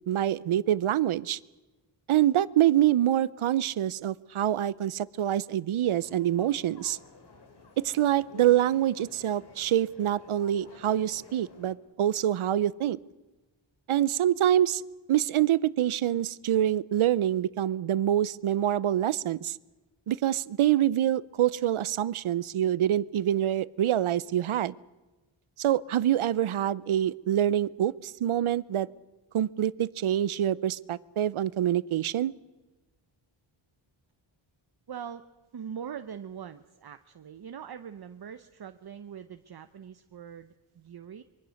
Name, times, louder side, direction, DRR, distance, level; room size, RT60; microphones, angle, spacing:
voice 1, 0.1-1.4 2.1-7.0 7.8-13.0 13.9-14.8 15.1-19.6 20.1-24.7 25.6-28.9 29.3-32.3, right 11 dB, 80° right, 20 dB, 0.7 m, -26 dB
sound 1, 5.9-11.7, left 3 dB, 55° left, 3.0 m, -52 dB
voice 2, 34.9-35.2 35.5-41.2, right 8 dB, 50° right, 10 dB, 0.8 m, -42 dB
25.5 x 23.0 x 6.4 m, 1.1 s
wide cardioid pair, 125°, 49 cm